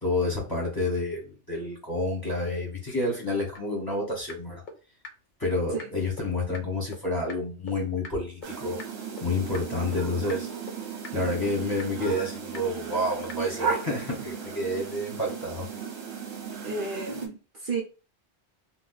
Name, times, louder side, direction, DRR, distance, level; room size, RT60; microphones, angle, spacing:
voice 1, 0.0-4.6 5.4-8.8 9.2-10.5 11.1-15.7, left 2 dB, 20° left, 1.0 m, -29 dB
sound 1, 3.6-3.7 3.9-4.0 4.3-4.4 4.7-4.8 5.0-5.1 5.4-5.5 5.8-5.9 6.2-6.3 6.5-6.6 6.9-7.0 7.3-7.4 7.7-7.8 8.0-8.1 8.4-8.5 8.8-8.9 9.2-9.3 9.5-9.6 9.9-10.0 10.3-10.4 10.7-10.8 11.0-11.1 11.4-11.5 11.8-11.9 12.2-12.3 12.5-12.6 12.9-13.0 13.3-13.4, left 4 dB, 50° left, 0.7 m, -40 dB
sound 2, 8.4-17.3, right 6 dB, 70° right, 1.0 m, -36 dB
voice 2, 16.6-17.8, right 4 dB, 55° right, 0.8 m, -32 dB
2.7 x 2.1 x 3.9 m
omnidirectional pair, 1.2 m